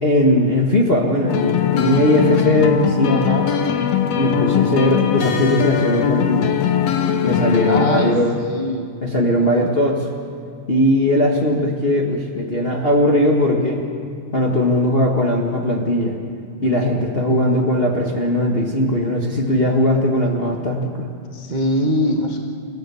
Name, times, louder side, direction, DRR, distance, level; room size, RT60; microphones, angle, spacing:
voice 1, 0.0-3.3 4.2-6.7 7.2-8.4 9.0-10.0 10.7-13.8 14.3-16.2 16.6-21.1, left 1 dB, 35° left, -1 dB, 0.9 m, -19 dB
sound 1, 1.3-8.1, left 8 dB, 65° left, 1.9 m, -20 dB
voice 2, 3.0-3.5 7.6-8.9 9.4-9.7 17.3-17.4 21.3-22.4, left 1 dB, 75° right, 0 dB, 0.4 m, -23 dB
27.5 x 15.5 x 7.0 m, 2.2 s
omnidirectional pair, 3.6 m